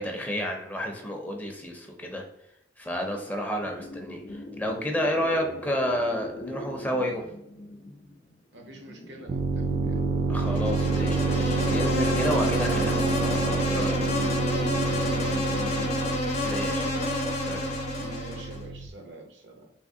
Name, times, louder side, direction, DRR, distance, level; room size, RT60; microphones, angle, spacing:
voice 1, 0.0-2.2 2.8-7.2 10.3-14.2 16.4-17.7, equal, 10° left, 2 dB, 0.5 m, -31 dB
sound 1, 3.6-16.2, left 1 dB, 70° left, 0.5 m, -41 dB
voice 2, 8.5-10.1 14.4-16.1 17.9-19.7, right 1 dB, 75° right, 3 dB, 0.7 m, -43 dB
sound 2, 9.3-18.9, right 3 dB, 50° right, 0.3 m, -28 dB
Insect, 10.4-18.6, left 1 dB, 40° left, 0.8 m, -30 dB
3.5 x 2.7 x 2.6 m, 0.78 s
head